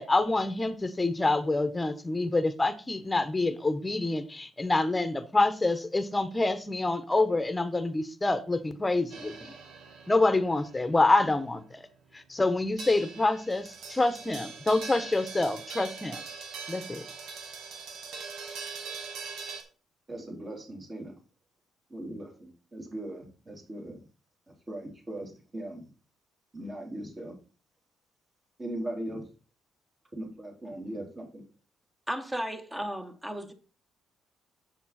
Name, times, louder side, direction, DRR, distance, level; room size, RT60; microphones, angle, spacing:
voice 1, 0.0-9.5 10.1-11.9 12.1-16.2 16.7-17.0, left 2 dB, 15° left, 1.2 m, -27 dB
sound 1, 9.1-19.6, right 5 dB, 90° right, 1.8 m, -42 dB
voice 2, 20.1-21.2 21.9-24.0 24.5-25.8 26.5-27.4 28.6-29.3 30.1-31.4, right 1 dB, 30° right, 3.8 m, -39 dB
voice 3, 32.1-33.5, equal, 10° right, 1.5 m, -34 dB
7.6 x 7.3 x 4.3 m
cardioid pair, 90°, 0 cm